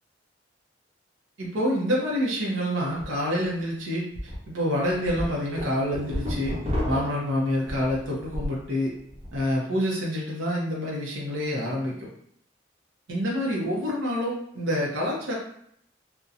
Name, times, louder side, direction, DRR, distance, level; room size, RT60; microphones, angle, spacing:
voice 1, 1.4-6.6 6.9-8.9 9.3-12.1 13.1-15.3, equal, 90° right, -4 dB, 0.7 m, -27 dB
sound 1, 3.0-3.1 3.5-3.6 4.1-4.4 4.8-8.6 9.0-9.4, left 1 dB, 35° right, 0.7 m, -31 dB
2.7 x 2.1 x 2.4 m, 0.70 s
head